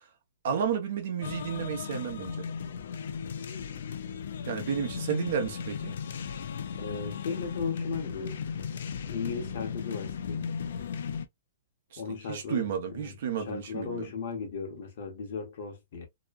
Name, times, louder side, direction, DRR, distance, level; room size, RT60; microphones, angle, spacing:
voice 1, 0.4-2.5 4.4-5.9 11.9-14.1, right 7 dB, 55° right, 0.9 m, -32 dB
sound 1, 1.2-11.2, left 7 dB, 70° left, 0.4 m, -36 dB
voice 2, 6.8-8.7 9.1-10.5 12.0-16.1, left 5 dB, 55° left, 1.1 m, -37 dB
2.9 x 2.2 x 2.3 m
hypercardioid pair, 165°, 0 cm